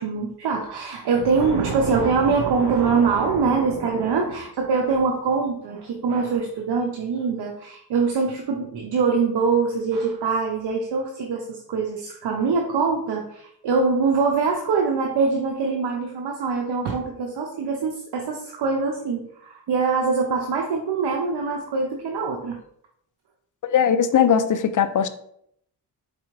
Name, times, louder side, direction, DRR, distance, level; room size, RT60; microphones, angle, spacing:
voice 1, 0.0-22.6, right 4 dB, 85° right, 0 dB, 0.7 m, -23 dB
voice 2, 23.6-25.1, left 8 dB, 50° left, 10 dB, 0.5 m, -19 dB
4.7 x 3.3 x 3.1 m, 0.70 s
cardioid pair, 90°, 40 cm